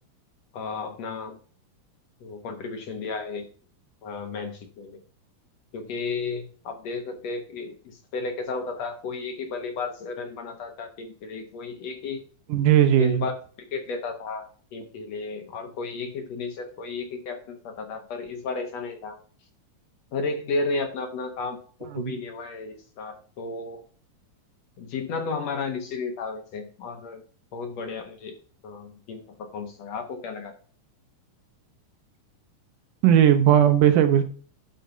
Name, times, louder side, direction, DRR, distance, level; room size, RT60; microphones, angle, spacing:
voice 1, 0.5-1.4 2.2-3.5 4.0-5.0 5.7-12.2 13.0-13.3 13.6-19.2 20.1-23.8 24.8-27.2 27.5-28.3 28.6-30.5, left 4 dB, 60° left, 4 dB, 2.1 m, -33 dB
voice 2, 12.5-13.2 21.9-22.2 33.0-34.2, right 10 dB, 75° right, 8 dB, 2.5 m, -18 dB
11.5 x 4.2 x 5.4 m, 0.41 s
omnidirectional pair, 3.8 m